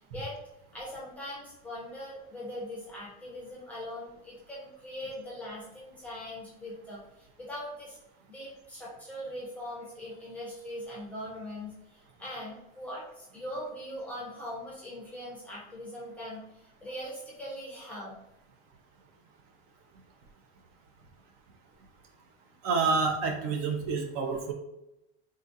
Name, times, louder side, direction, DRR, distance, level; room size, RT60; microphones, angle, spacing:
voice 1, 0.7-8.0 8.3-16.4 16.8-18.2, equal, 5° left, -6 dB, 0.5 m, -41 dB
voice 2, 22.6-24.5, right 4 dB, 55° right, 3 dB, 0.5 m, -28 dB
3.5 x 2.3 x 2.6 m, 0.89 s
cardioid pair, 170°, 31 cm